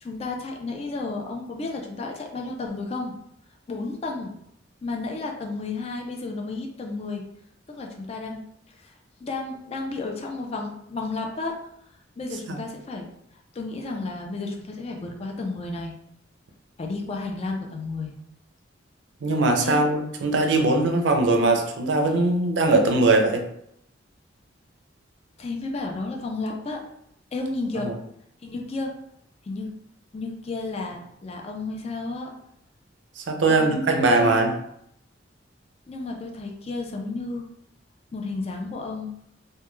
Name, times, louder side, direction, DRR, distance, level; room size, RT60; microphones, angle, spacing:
voice 1, 0.0-3.1 3.7-4.3 4.8-7.2 7.7-8.4 8.8-8.9 9.2-11.6 12.2-13.1 13.5-15.9 16.8-18.1 19.6-19.9 25.4-26.8 27.3-27.9 28.4-28.9 29.5-29.7 30.1-32.3 33.5-33.8 34.2-34.4 35.9-37.4 38.1-39.1, left 3 dB, 35° left, 1 dB, 0.4 m, -32 dB
voice 2, 19.2-23.4 27.8-27.9 33.2-34.5, right 2 dB, 65° right, 4 dB, 0.4 m, -21 dB
2.2 x 2.2 x 3.0 m, 0.74 s
head